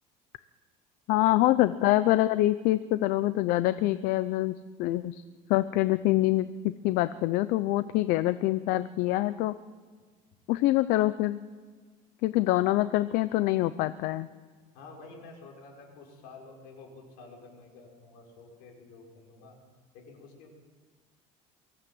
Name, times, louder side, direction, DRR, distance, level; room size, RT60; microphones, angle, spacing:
voice 1, 1.1-5.2 5.5-9.5 10.5-11.4 12.2-14.3, left 16 dB, 70° left, 14 dB, 0.6 m, -25 dB
voice 2, 14.7-19.6 19.9-20.5, left 3 dB, 85° left, 0 dB, 6.1 m, -50 dB
23.5 x 15.0 x 7.9 m, 1.5 s
cardioid pair, 155°, 16 cm